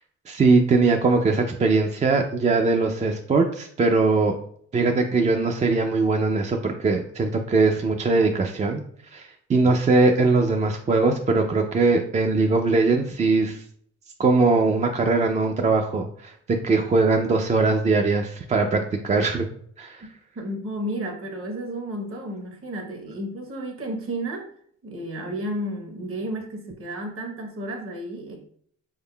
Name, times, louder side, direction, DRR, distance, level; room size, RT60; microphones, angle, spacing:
voice 1, 0.3-4.3 4.7-8.8 9.1-13.6 14.2-19.5 19.8-20.0, right 3 dB, 25° right, 4 dB, 0.4 m, -21 dB
voice 2, 20.4-24.5 24.8-28.4, right 1 dB, 45° right, 4 dB, 1.0 m, -32 dB
3.6 x 3.6 x 2.2 m, 0.62 s
cardioid pair, 90°, 30 cm